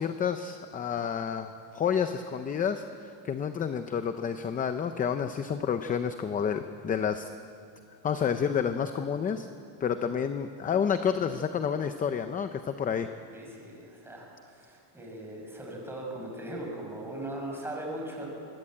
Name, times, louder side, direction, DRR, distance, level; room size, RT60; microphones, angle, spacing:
voice 1, 0.0-7.3 8.0-9.5 9.8-13.1, left 7 dB, 20° left, 8 dB, 0.5 m, -29 dB
voice 2, 13.3-18.3, right 1 dB, 5° right, -1 dB, 6.1 m, -39 dB
25.0 x 22.5 x 8.9 m, 2.4 s
cardioid pair, 170°, 47 cm